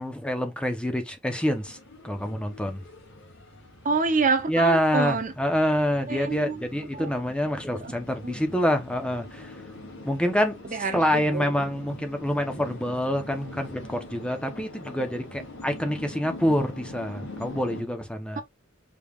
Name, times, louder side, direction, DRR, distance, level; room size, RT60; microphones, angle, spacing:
voice 1, 0.0-1.8 2.0-2.8 4.5-9.6 10.0-10.6 10.9-18.4, equal, 5° left, 0.7 m, -26 dB
sound 1, 1.3-17.8, left 1 dB, 60° left, 2.1 m, -44 dB
voice 2, 3.8-5.3 6.1-6.6 6.9-7.1 7.8-7.9 8.2-8.3 10.7-11.5 18.4-18.5, right 4 dB, 40° right, 0.7 m, -27 dB
5.2 x 3.3 x 2.3 m
head